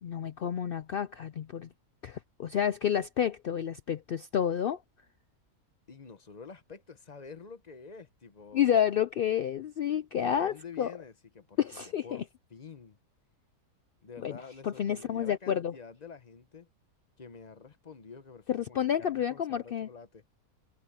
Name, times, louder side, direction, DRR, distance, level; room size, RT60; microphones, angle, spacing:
voice 1, 0.0-1.7 2.0-4.8 8.5-10.9 11.6-12.2 14.2-14.4 14.6-15.7 18.5-19.9, left 9 dB, 75° left, 0.5 m, -30 dB
voice 2, 5.9-8.8 10.2-11.6 12.0-12.2 12.5-13.0 14.0-16.7 17.2-20.2, left 5 dB, 35° left, 0.9 m, -48 dB
omnidirectional pair, 1.5 m